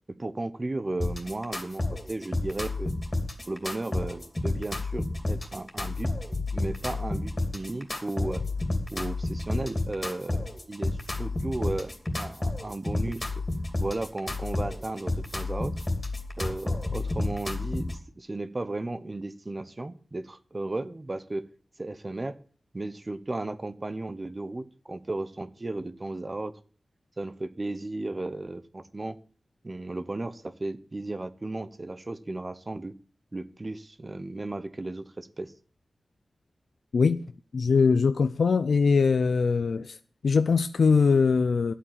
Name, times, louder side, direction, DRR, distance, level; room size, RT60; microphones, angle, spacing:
voice 1, 0.2-2.9 3.5-6.1 6.5-8.4 8.9-13.3 13.8-15.7 16.4-21.4 21.8-22.4 22.7-26.5 27.2-29.2 29.6-32.9 33.3-35.5, right 2 dB, 30° right, 1.0 m, -35 dB
sound 1, 1.0-18.0, left 2 dB, 25° left, 2.7 m, -31 dB
voice 2, 36.9-37.2 37.5-40.0 40.2-41.7, left 5 dB, 80° left, 0.5 m, -22 dB
11.5 x 8.3 x 7.5 m
wide cardioid pair, 85°, 0 cm